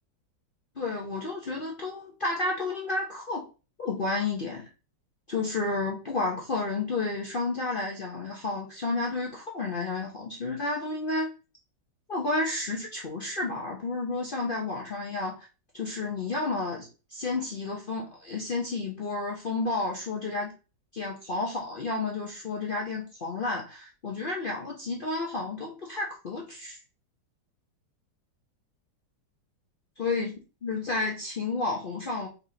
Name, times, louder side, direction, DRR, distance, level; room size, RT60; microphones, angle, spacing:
voice 1, 0.8-3.4 3.8-4.7 5.3-11.3 12.1-15.5 15.7-20.5 20.9-26.8 30.0-30.3 30.6-32.3, left 3 dB, 45° left, -2 dB, 0.7 m, -31 dB
4.7 x 3.9 x 2.8 m, 0.33 s
omnidirectional pair, 1.9 m